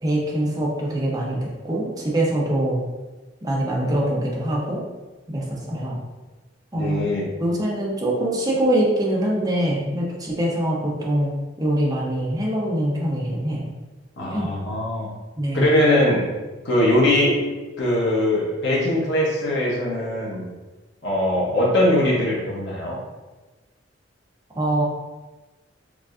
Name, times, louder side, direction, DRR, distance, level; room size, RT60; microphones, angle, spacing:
voice 1, 0.0-2.8 3.4-4.8 5.3-6.0 6.7-7.1 7.4-13.7 14.3-14.5 15.4-15.7 24.5-24.8, right 1 dB, 20° right, -3 dB, 0.6 m, -23 dB
voice 2, 6.7-7.3 14.2-15.1 15.5-16.3 16.6-17.4 17.8-20.4 21.0-23.0, left 1 dB, 75° left, -5 dB, 0.9 m, -21 dB
4.7 x 2.5 x 2.4 m, 1.2 s
head